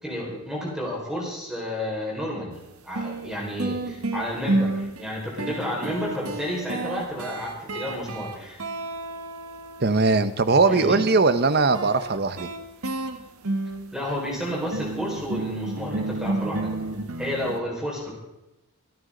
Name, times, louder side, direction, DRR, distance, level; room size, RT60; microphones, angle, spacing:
voice 1, 0.0-2.6 2.8-8.6 10.7-11.0 13.9-16.8 17.2-18.2, left 1 dB, 5° right, -4 dB, 5.0 m, -31 dB
sound 1, 2.5-2.6 3.0-10.2 11.7-17.6, right 2 dB, 75° right, 1.4 m, -31 dB
voice 2, 9.8-12.5, right 3 dB, 45° right, 12 dB, 0.8 m, -20 dB
25.5 x 9.7 x 3.9 m, 0.93 s
head